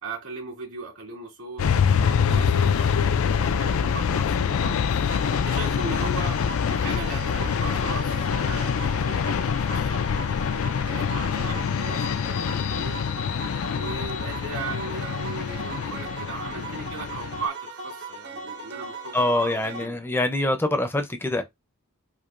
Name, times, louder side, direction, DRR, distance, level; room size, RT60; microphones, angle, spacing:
voice 1, 0.0-4.8 5.2-6.4 6.7-10.1 10.9-13.0 13.7-20.0, right 3 dB, 75° right, 2.5 m, -37 dB
sound 1, 1.6-17.5, left 7 dB, 70° left, 0.4 m, -25 dB
sound 2, 5.1-19.9, right 2 dB, 50° right, 1.0 m, -38 dB
voice 2, 19.1-21.4, left 1 dB, 10° left, 0.5 m, -24 dB
4.6 x 2.6 x 2.5 m
head